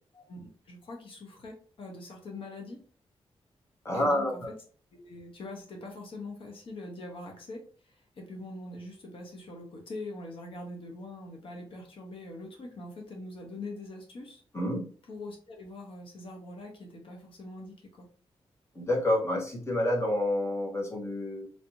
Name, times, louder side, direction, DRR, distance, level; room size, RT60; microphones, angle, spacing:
voice 1, 0.1-2.8 3.9-4.5 4.9-14.4 15.1-18.1, left 2 dB, 55° left, 1 dB, 0.8 m, -43 dB
voice 2, 3.8-4.5 14.5-14.9 18.7-21.5, left 1 dB, 25° left, 0 dB, 0.9 m, -28 dB
3.2 x 2.6 x 2.8 m, 0.42 s
wide cardioid pair, 160°, 11 cm